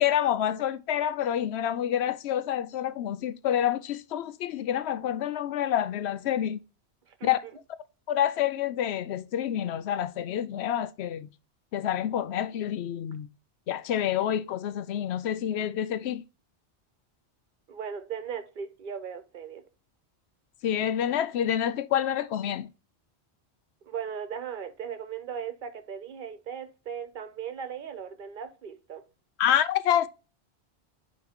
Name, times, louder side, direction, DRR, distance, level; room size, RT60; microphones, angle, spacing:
voice 1, 0.0-6.6 7.2-7.4 8.1-11.3 11.7-13.3 13.7-16.2 20.6-22.7 29.4-30.1, left 10 dB, 75° left, 0.8 m, -28 dB
voice 2, 17.7-19.6 23.9-29.0, right 7 dB, 50° right, 1.0 m, -37 dB
9.2 x 3.2 x 3.5 m
omnidirectional pair, 1.1 m